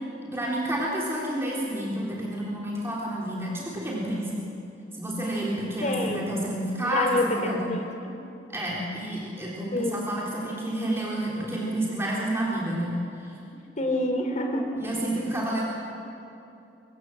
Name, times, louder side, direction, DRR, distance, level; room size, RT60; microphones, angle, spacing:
voice 1, 0.3-4.5 4.9-7.7 8.5-13.4 14.8-15.6, right 1 dB, 15° right, -5 dB, 3.7 m, -30 dB
voice 2, 5.8-6.3 6.8-8.2 9.7-10.0 13.8-14.7, left 1 dB, 45° left, 3 dB, 3.6 m, -27 dB
24.5 x 22.0 x 7.7 m, 2.7 s
head